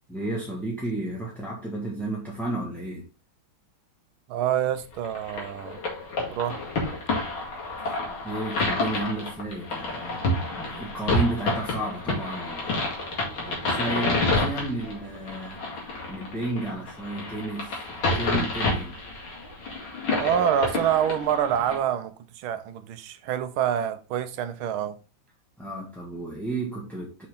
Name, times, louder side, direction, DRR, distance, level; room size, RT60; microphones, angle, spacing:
voice 1, 0.1-3.1 8.2-10.2 10.5-12.9 13.2-15.6 16.1-19.0 25.6-27.3, right 2 dB, ahead, 1.4 m, -32 dB
voice 2, 4.3-5.8 6.3-6.6 20.2-25.0, right 10 dB, 85° right, 1.6 m, -26 dB
sound 1, 5.0-21.8, left 2 dB, 85° left, 3.0 m, -29 dB
6.3 x 5.5 x 3.7 m
omnidirectional pair, 2.2 m